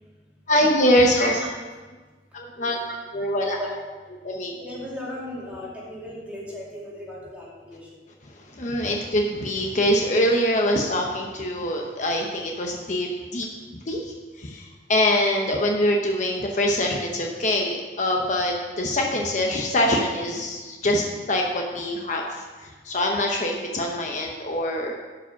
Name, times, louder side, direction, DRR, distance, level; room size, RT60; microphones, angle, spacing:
voice 1, 0.5-1.3 2.3-2.8 3.1-3.6 4.2-4.7 8.4-13.5 13.9-24.9, left 1 dB, 45° left, 1 dB, 0.8 m, -24 dB
voice 2, 1.2-1.5 2.5-2.9 3.4-3.7 4.6-8.0, left 1 dB, 10° right, -6 dB, 2.6 m, -35 dB
11.5 x 5.0 x 5.8 m, 1.3 s
head